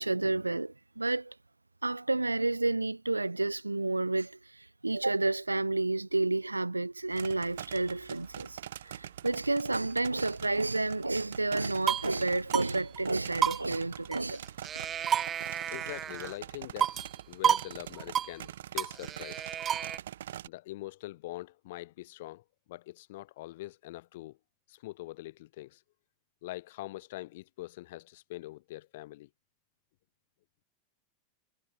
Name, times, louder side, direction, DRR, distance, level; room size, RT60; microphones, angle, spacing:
voice 1, 0.0-1.3 1.8-14.5, right 2 dB, 85° right, 2.4 m, -30 dB
sound 1, 7.1-20.5, right 11 dB, 60° right, 2.9 m, -44 dB
sound 2, 11.5-12.1 12.5-12.7 13.0-13.1 13.4-14.4 14.6-16.4 16.8-17.2 17.4-17.7 18.0-18.3 18.8-20.0, right 9 dB, 25° right, 0.5 m, -30 dB
voice 2, 15.7-19.4 20.4-24.4 24.7-25.8 26.4-29.3, left 17 dB, 55° left, 6.7 m, -43 dB
figure-of-eight pair, 90°, 0 cm